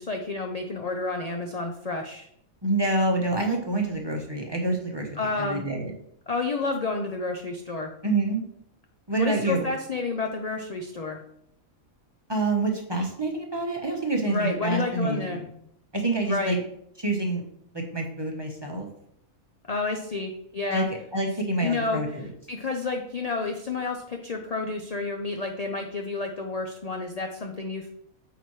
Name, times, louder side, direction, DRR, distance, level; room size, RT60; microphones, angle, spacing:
voice 1, 0.0-2.3 5.2-5.6 6.3-7.9 9.2-11.2 14.3-15.4 16.2-16.6 19.6-20.9 21.6-22.0 22.5-27.9, left 3 dB, 50° left, 3 dB, 0.5 m, -30 dB
voice 2, 2.6-5.1 5.4-5.9 8.0-8.4 9.1-9.7 12.3-15.5 15.9-16.6 17.0-17.4 17.7-18.9 20.7-20.8 21.1-22.3, right 2 dB, 20° right, 1 dB, 0.9 m, -27 dB
9.0 x 4.6 x 3.1 m, 0.70 s
omnidirectional pair, 1.5 m